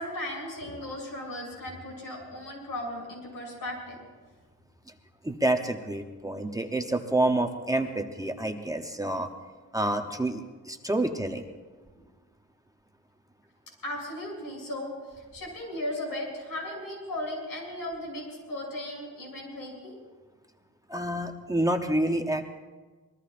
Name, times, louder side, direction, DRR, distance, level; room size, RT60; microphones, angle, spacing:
voice 1, 0.0-4.0 12.0-12.1 13.8-19.9, left 1 dB, 85° left, -1 dB, 7.0 m, -36 dB
voice 2, 5.2-9.3 9.7-11.4 20.9-22.4, right 1 dB, 10° right, 5 dB, 0.7 m, -28 dB
26.0 x 21.5 x 2.5 m, 1.3 s
wide cardioid pair, 175°, 33 cm